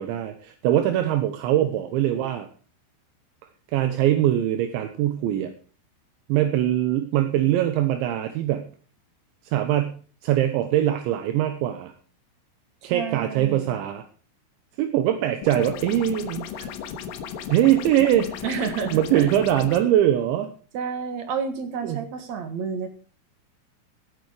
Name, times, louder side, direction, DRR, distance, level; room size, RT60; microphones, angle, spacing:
voice 1, 0.0-2.5 3.7-5.5 6.3-8.7 9.4-11.9 12.8-14.0 14.8-16.7 17.5-18.4 18.9-20.5 21.8-22.1, right 12 dB, 80° right, 7 dB, 3.3 m, -22 dB
voice 2, 12.8-13.8 18.4-19.3 20.7-22.9, right 6 dB, 60° right, 7 dB, 1.9 m, -30 dB
sound 1, 15.4-19.8, left 8 dB, 85° left, 3.7 m, -35 dB
16.5 x 8.8 x 5.0 m, 0.41 s
omnidirectional pair, 5.4 m